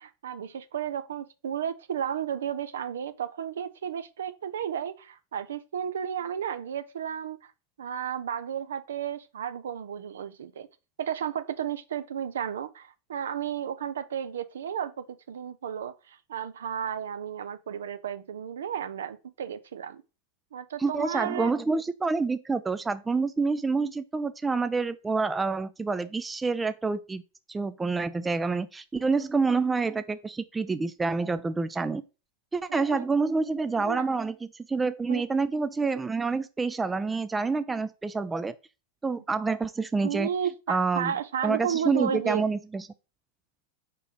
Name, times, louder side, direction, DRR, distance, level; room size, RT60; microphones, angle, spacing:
voice 1, 0.0-7.5 7.8-10.7 11.0-20.0 20.5-21.5 32.7-33.1 33.8-34.1 35.1-35.3 40.0-42.5, right 9 dB, 65° right, 0.6 m, -33 dB
voice 2, 20.8-27.2 27.5-32.0 32.5-34.4 34.7-38.5 39.0-40.3 40.7-41.1 41.4-42.9, right 4 dB, 10° right, 0.4 m, -27 dB
5.0 x 4.4 x 5.0 m
figure-of-eight pair, 90°, 0 cm